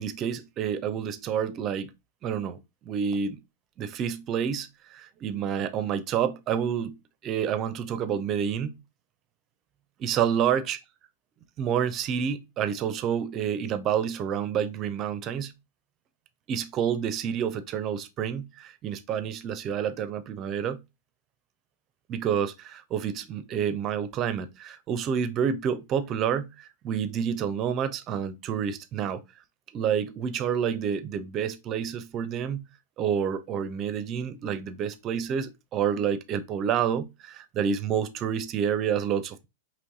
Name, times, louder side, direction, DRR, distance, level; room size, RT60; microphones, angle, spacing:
voice 1, 0.0-1.9 2.2-2.6 2.9-3.4 3.8-6.9 7.2-8.8 10.0-10.8 11.6-15.5 16.5-20.8 22.1-29.2 29.7-32.6 33.0-39.5, right 8 dB, 35° right, 0.5 m, -28 dB
4.5 x 3.0 x 2.6 m
hypercardioid pair, 105°, 0 cm